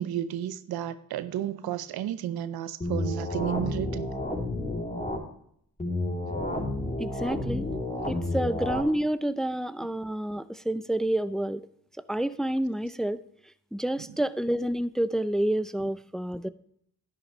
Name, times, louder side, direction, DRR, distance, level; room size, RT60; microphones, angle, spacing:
voice 1, 0.0-4.1 6.3-6.4, right 11 dB, 90° right, 14 dB, 0.6 m, -32 dB
sound 1, 2.8-5.2 5.8-8.8, left 2 dB, 20° left, 3.2 m, -31 dB
voice 2, 7.0-7.7 8.1-11.6 12.1-13.2 13.7-16.5, right 1 dB, ahead, 13 dB, 0.5 m, -29 dB
10.5 x 10.5 x 3.2 m, 0.68 s
supercardioid pair, 50°, 35 cm